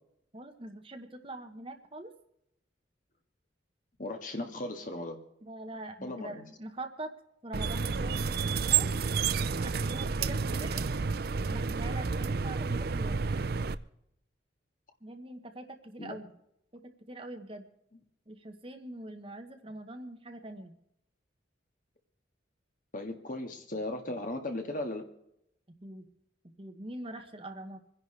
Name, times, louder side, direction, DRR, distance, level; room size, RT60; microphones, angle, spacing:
voice 1, 0.3-2.1 5.4-7.1 7.4-8.9 9.6-10.8 11.5-13.2 15.0-16.3 16.7-17.7 18.3-20.8 25.8-26.1 26.4-27.8, right 1 dB, 30° right, 6 dB, 1.2 m, -43 dB
voice 2, 4.0-5.2 6.0-6.4 16.0-16.2 22.9-25.0, left 1 dB, 45° left, 5 dB, 1.8 m, -37 dB
sound 1, 7.5-13.7, right 5 dB, 55° right, 0.5 m, -30 dB
27.0 x 10.5 x 3.3 m, 0.80 s
head